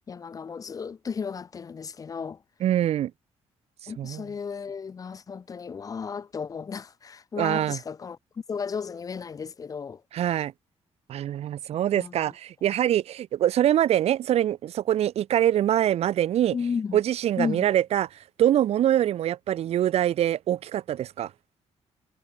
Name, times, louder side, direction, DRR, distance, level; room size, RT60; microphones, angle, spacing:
voice 1, 0.1-2.4 3.9-8.2 8.5-10.0 11.9-12.2 16.5-17.0 17.4-17.7, left 6 dB, 30° left, 1.8 m, -34 dB
voice 2, 2.6-3.1 4.0-4.2 7.4-7.8 10.1-10.5 11.1-16.6 16.9-18.1 18.4-21.3, right 11 dB, 65° right, 1.0 m, -24 dB
cardioid pair, 170°, 11 cm